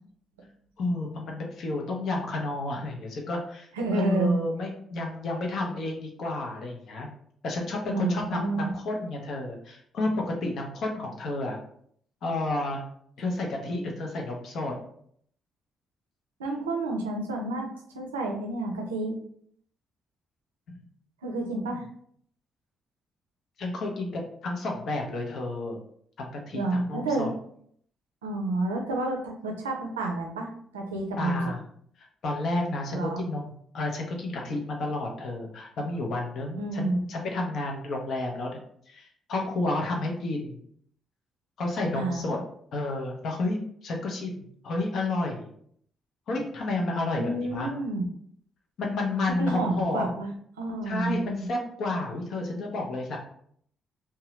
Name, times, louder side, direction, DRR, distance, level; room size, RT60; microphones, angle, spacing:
voice 1, 0.8-3.7 3.9-7.1 7.4-11.6 12.2-12.8 13.2-14.7 20.7-20.8 21.7-21.8 23.6-25.8 26.2-27.3 31.2-31.6 32.2-38.5 38.9-40.6 41.6-42.4 42.7-45.5 46.3-47.7 48.8-50.1 50.8-53.2, left 2 dB, 60° left, 1 dB, 0.7 m, -31 dB
voice 2, 3.7-4.4 7.9-8.7 16.4-17.7 17.9-19.1 21.2-21.9 26.5-27.3 28.2-31.5 32.9-33.2 36.6-37.0 41.9-42.2 47.2-48.0 49.3-50.3 50.6-51.5, right 2 dB, 90° right, 2 dB, 0.4 m, -29 dB
2.7 x 2.2 x 3.1 m, 0.64 s
hypercardioid pair, 45°, 0 cm